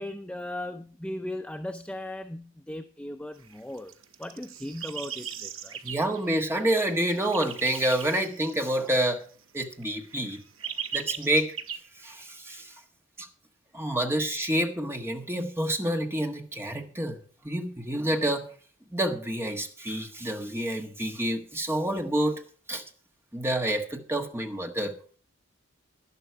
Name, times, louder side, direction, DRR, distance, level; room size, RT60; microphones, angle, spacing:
voice 1, 0.0-3.9 4.2-5.8 14.0-14.1, left 1 dB, 5° left, 0.4 m, -37 dB
sound 1, 3.4-9.6 9.8-11.8, right 8 dB, 85° right, 1.3 m, -39 dB
voice 2, 5.8-9.2 9.5-10.4 10.9-11.5 12.0-12.7 13.2-13.3 13.7-17.2 17.4-18.4 18.9-22.4 22.7-22.8 23.3-24.9, right 1 dB, 10° right, 1.3 m, -28 dB
11.5 x 11.0 x 4.7 m
head